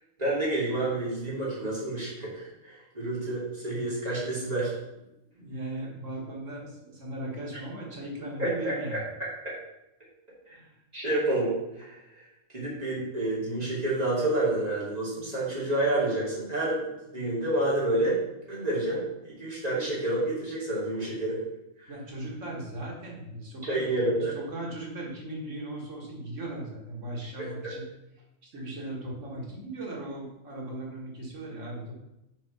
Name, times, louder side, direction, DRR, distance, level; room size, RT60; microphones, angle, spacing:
voice 1, 0.2-4.7 8.4-8.7 10.9-12.2 12.5-18.2 18.5-21.4 21.8-21.9 23.6-24.4 27.4-27.7, right 2 dB, 35° right, -7 dB, 3.0 m, -29 dB
voice 2, 5.3-9.0 10.5-10.7 21.9-27.9 28.4-31.9, right 1 dB, 85° right, -2 dB, 2.1 m, -38 dB
6.0 x 4.6 x 5.5 m, 0.89 s
omnidirectional pair, 1.2 m